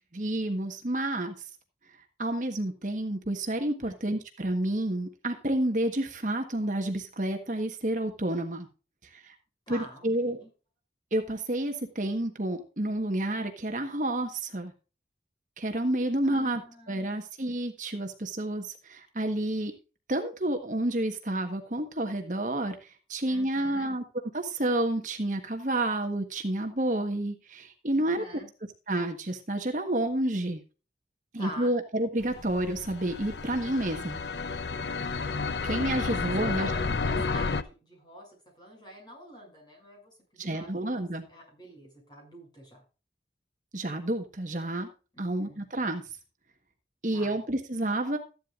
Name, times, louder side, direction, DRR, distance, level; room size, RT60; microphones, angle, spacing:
voice 1, 0.1-1.3 2.2-8.7 9.0-9.3 9.7-10.4 11.1-14.7 15.6-16.6 16.9-19.7 20.1-24.0 24.3-28.2 28.9-30.6 31.3-34.2 35.6-36.7 40.4-41.2 43.7-44.9 45.2-46.0 47.0-48.2, right 1 dB, 45° right, 5 dB, 1.3 m, -30 dB
voice 2, 9.7-10.5 16.2-17.2 23.3-23.9 27.9-28.5 31.4-31.7 36.0-38.3 38.6-40.9 41.3-42.8 45.1-45.6 47.1-47.4, equal, 25° left, 0 dB, 6.8 m, -46 dB
sound 1, 32.2-37.6, left 4 dB, 70° left, 0.7 m, -31 dB
14.0 x 11.0 x 2.5 m, 0.33 s
head